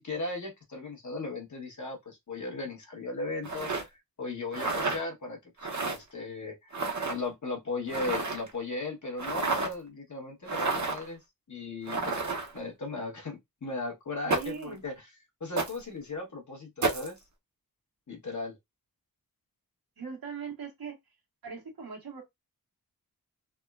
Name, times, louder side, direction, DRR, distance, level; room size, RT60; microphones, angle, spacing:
voice 1, 0.0-6.8 7.1-11.2 11.5-12.2 12.5-15.0 15.4-17.2 18.1-18.6, left 3 dB, 55° left, 1.1 m, -37 dB
sound 1, 3.4-3.8 4.5-5.0 5.6-6.0 6.7-7.2 7.9-8.5 9.2-9.7 10.5-11.1 11.9-12.6 14.3-14.6 15.6-15.8 16.8-17.1, right 3 dB, 50° right, 0.8 m, -30 dB
voice 2, 14.3-14.8 20.0-21.0 21.4-22.2, right 6 dB, 80° right, 1.2 m, -40 dB
3.5 x 2.1 x 2.3 m
wide cardioid pair, 70°, 36 cm